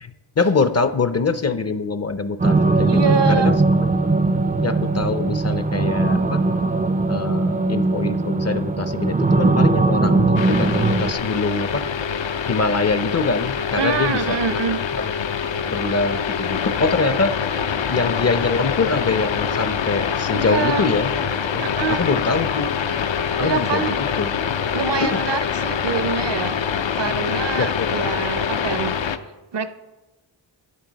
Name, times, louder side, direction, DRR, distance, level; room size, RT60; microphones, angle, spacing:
voice 1, 0.0-3.5 4.6-6.4 7.1-11.8 12.5-14.4 15.0-15.1 15.7-17.3 17.9-21.1 21.5-22.7 23.4-23.8 24.2-24.3 25.0-25.2 27.6-27.9, left 4 dB, 35° left, 11 dB, 0.5 m, -24 dB
sound 1, 2.4-11.1, right 3 dB, 20° right, 0.4 m, -19 dB
voice 2, 2.8-3.5 13.8-14.8 20.3-20.9 21.6-22.2 23.4-24.0 24.7-26.6 26.9-28.9 29.5-29.7, right 5 dB, 65° right, 12 dB, 0.7 m, -25 dB
sound 2, 10.4-29.2, left 7 dB, 75° left, 0.7 m, -25 dB
12.0 x 7.9 x 3.9 m, 1.1 s
wide cardioid pair, 95°, 46 cm